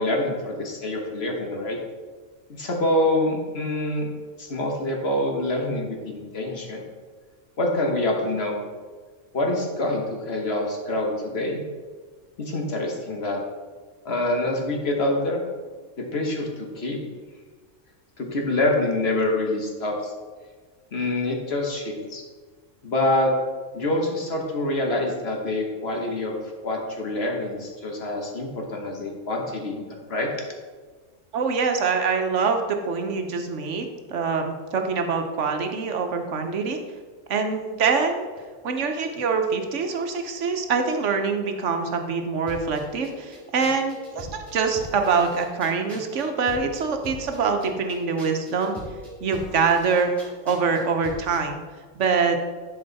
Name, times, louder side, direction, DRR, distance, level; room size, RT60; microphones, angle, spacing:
voice 1, 0.0-1.8 2.5-4.1 4.4-6.8 7.6-8.6 9.3-11.6 12.4-13.4 14.0-15.4 16.0-17.1 18.2-20.1 20.9-22.2 22.8-23.3 23.7-26.4 26.6-30.3, left 1 dB, 55° left, 1 dB, 1.5 m, -26 dB
voice 2, 31.3-36.8 37.3-38.2 38.6-48.8 49.2-50.1 50.4-51.6 51.9-52.4, right 5 dB, 70° right, 5 dB, 1.2 m, -24 dB
sound 1, 42.5-51.4, right 1 dB, ahead, 2.3 m, -42 dB
11.5 x 4.9 x 4.0 m, 1.5 s
omnidirectional pair, 1.3 m